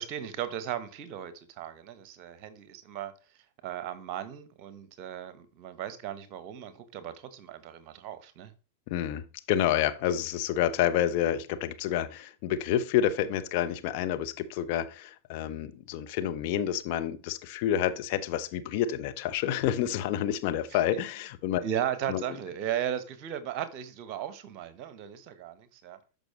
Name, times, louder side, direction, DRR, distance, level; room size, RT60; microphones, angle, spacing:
voice 1, 0.0-3.1 3.6-8.5 20.7-21.0 21.6-26.0, right 10 dB, 40° right, 1.2 m, -36 dB
voice 2, 8.9-21.6 22.1-22.2, left 11 dB, 45° left, 0.9 m, -29 dB
13.0 x 5.4 x 3.2 m
figure-of-eight pair, 90°, 0 cm